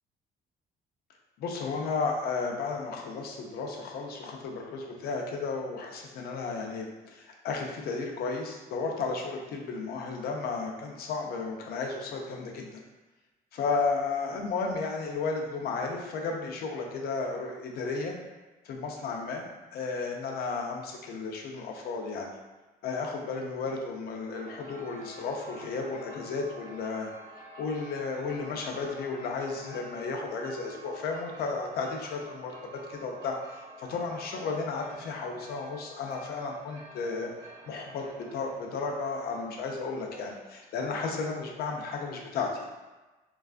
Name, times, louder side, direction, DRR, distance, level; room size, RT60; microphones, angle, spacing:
voice 1, 1.4-12.8 13.5-18.2 18.6-22.4 22.8-27.1 27.6-32.5 32.9-37.3 37.7-42.7, left 4 dB, 65° left, 1 dB, 0.5 m, -33 dB
sound 1, 24.2-40.7, equal, 25° right, 0.6 m, -49 dB
2.3 x 2.3 x 2.4 m, 1.2 s
cardioid pair, 110°, 17 cm